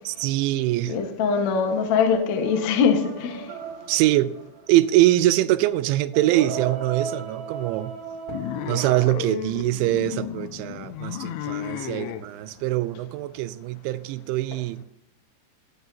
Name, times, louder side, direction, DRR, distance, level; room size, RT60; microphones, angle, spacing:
voice 1, 0.1-1.0 3.9-4.3 4.7-7.9 8.7-14.8, right 16 dB, 85° right, 2.9 m, -23 dB
voice 2, 0.8-3.4, left 6 dB, 70° left, 1.7 m, -22 dB
sound 1, 1.6-4.9 6.1-9.0, right 5 dB, 60° right, 3.1 m, -36 dB
sound 2, 8.3-12.3, left 12 dB, 85° left, 3.0 m, -33 dB
17.5 x 12.0 x 2.8 m
omnidirectional pair, 5.4 m